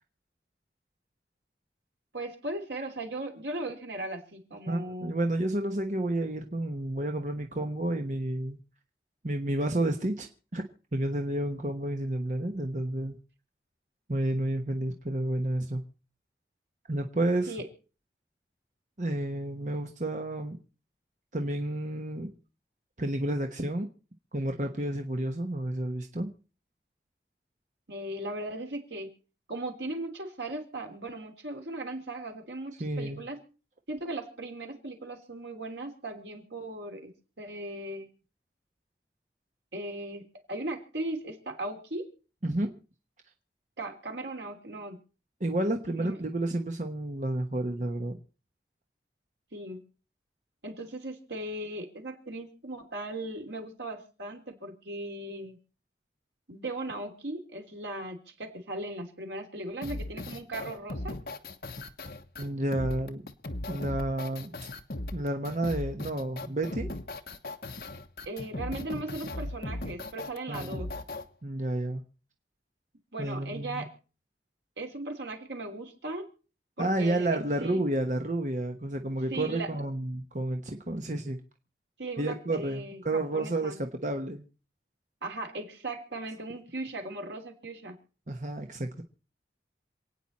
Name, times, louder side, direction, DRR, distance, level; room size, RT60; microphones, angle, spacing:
voice 1, 2.1-5.1 17.5-17.7 27.9-29.1 29.5-33.4 33.9-38.1 39.7-42.1 43.8-45.0 46.0-46.2 49.5-49.8 50.6-55.6 56.5-61.2 68.2-70.9 73.1-73.9 74.8-76.3 76.8-77.8 79.3-79.7 82.0-83.8 85.2-88.0, right 2 dB, 85° right, 3 dB, 3.1 m, -38 dB
voice 2, 4.7-8.6 9.2-10.6 10.9-13.2 14.1-15.8 16.9-17.5 19.0-20.6 21.3-22.3 23.0-23.9 24.3-26.3 32.8-33.2 42.4-42.7 45.4-48.2 62.4-63.2 63.7-64.5 65.1-66.9 70.5-70.8 71.4-72.0 73.2-73.9 76.8-81.4 82.2-84.4 88.3-89.0, right 1 dB, 45° right, 4 dB, 1.1 m, -30 dB
sound 1, 59.8-71.2, left 2 dB, 60° left, 1.2 m, -37 dB
27.5 x 9.2 x 4.2 m, 0.37 s
head